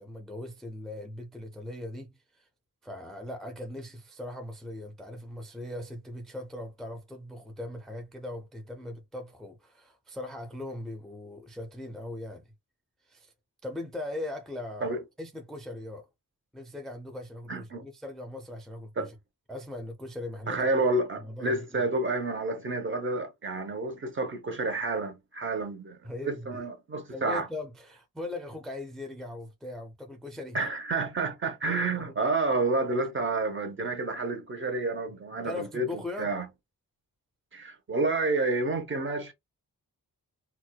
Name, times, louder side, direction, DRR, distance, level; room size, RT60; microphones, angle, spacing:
voice 1, 0.0-2.5 2.8-12.5 13.0-13.3 13.6-16.1 16.5-19.1 19.5-20.7 21.2-21.9 26.0-26.7 27.1-30.6 32.0-32.2 35.4-36.3, left 1 dB, ahead, 0.4 m, -40 dB
voice 2, 17.5-17.8 19.0-19.1 20.5-26.0 26.2-27.5 30.5-36.5 37.5-39.3, right 2 dB, 35° right, 0.7 m, -29 dB
4.4 x 2.1 x 2.2 m
wide cardioid pair, 165°, 35 cm